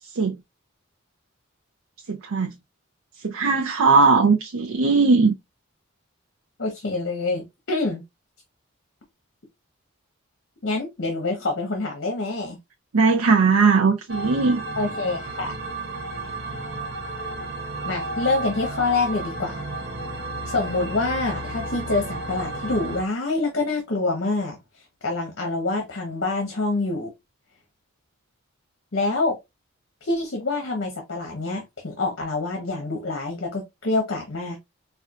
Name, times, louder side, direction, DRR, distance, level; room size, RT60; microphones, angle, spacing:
voice 1, 2.1-2.5 3.2-5.3 12.9-14.6, right 4 dB, 85° right, 0.5 m, -19 dB
voice 2, 6.6-8.0 10.6-12.6 14.8-15.5 17.8-19.6 20.4-24.6 25.0-27.1 28.9-29.4 30.0-34.6, left 3 dB, 55° left, 0.9 m, -26 dB
sound 1, 14.1-23.0, right 2 dB, 45° right, 0.7 m, -32 dB
4.3 x 2.4 x 2.4 m
head